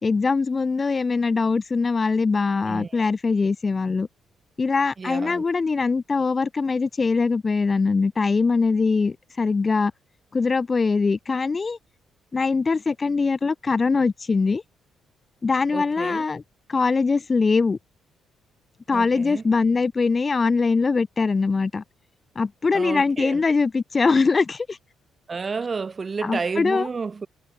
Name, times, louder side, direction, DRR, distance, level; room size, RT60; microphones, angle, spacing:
voice 1, 0.0-4.1 4.6-9.9 10.3-11.8 12.3-14.6 15.4-16.4 16.7-17.8 18.9-21.8 22.3-24.8 26.2-26.9, left 4 dB, 30° left, 1.3 m, -22 dB
voice 2, 2.6-3.0 5.0-5.5 15.7-16.2 18.9-19.4 22.7-23.4 25.3-27.3, right 4 dB, 35° right, 3.5 m, -31 dB
cardioid pair, 90°, 0 cm